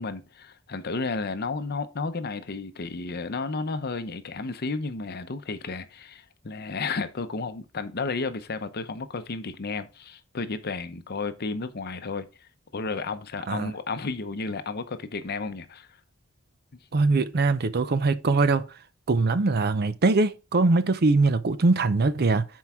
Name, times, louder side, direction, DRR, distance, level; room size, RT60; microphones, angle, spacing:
voice 1, 0.0-12.3 12.7-15.9, left 4 dB, 50° left, 0.7 m, -32 dB
voice 2, 16.9-18.7 19.1-22.4, right 3 dB, 50° right, 0.6 m, -22 dB
10.0 x 4.7 x 3.6 m
head